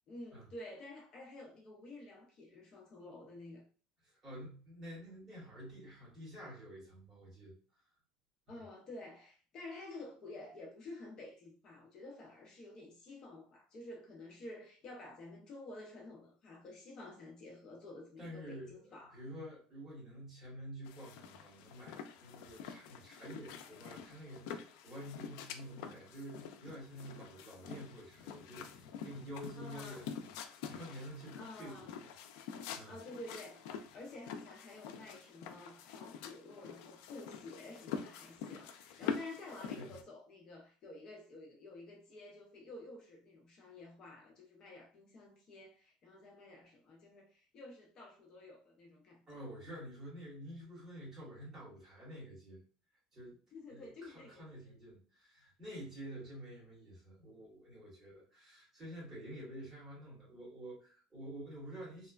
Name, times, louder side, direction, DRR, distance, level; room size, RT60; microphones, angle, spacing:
voice 1, 0.1-3.6 8.5-19.2 29.5-30.1 31.4-31.9 32.9-49.2 53.5-54.8, left 2 dB, 30° left, 0.5 m, -51 dB
voice 2, 4.0-7.6 8.5-8.6 18.2-32.1 32.7-32.9 38.9-39.2 39.7-39.9 49.3-52.6 53.1-53.4 53.7-62.1, equal, 15° right, 1.3 m, -49 dB
sound 1, 20.8-40.0, left 7 dB, 85° left, 0.3 m, -46 dB
3.0 x 2.1 x 2.3 m
cardioid pair, 180°, 2 cm